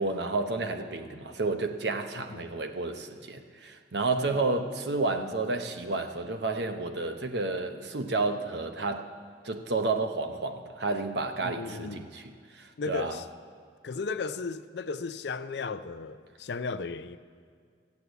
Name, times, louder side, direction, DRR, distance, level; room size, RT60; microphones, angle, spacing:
voice 1, 0.0-9.1 9.4-12.2 12.5-13.2, right 3 dB, 70° right, 1.0 m, -31 dB
voice 2, 11.4-12.1 12.8-13.3 13.8-17.2, left 4 dB, 70° left, 0.5 m, -35 dB
14.0 x 8.4 x 8.0 m
head